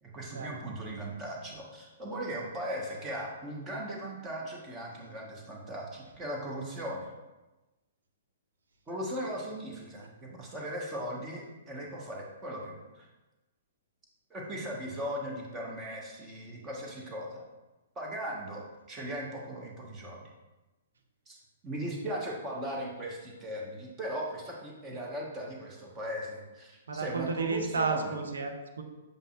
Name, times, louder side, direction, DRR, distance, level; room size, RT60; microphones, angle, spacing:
voice 1, 0.0-7.1 8.9-13.1 14.3-17.4 17.9-20.2 21.3-21.4 21.6-28.1, right 1 dB, 20° right, -2 dB, 1.4 m, -38 dB
voice 2, 26.9-28.8, right 4 dB, 70° right, 3 dB, 0.9 m, -32 dB
6.8 x 5.4 x 2.5 m, 1.1 s
figure-of-eight pair, 120°, 0 cm